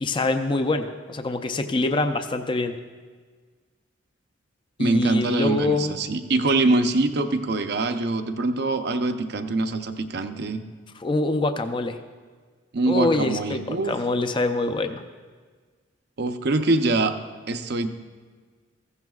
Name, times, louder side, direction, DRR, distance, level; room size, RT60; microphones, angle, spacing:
voice 1, 0.0-2.7 4.8-6.0 11.0-12.0 12.9-15.0, left 2 dB, 25° left, 7 dB, 0.5 m, -25 dB
voice 2, 4.8-10.6 12.7-13.9 16.2-17.2 17.5-17.9, right 2 dB, 55° right, 7 dB, 0.7 m, -24 dB
15.0 x 15.0 x 2.4 m, 1.5 s
head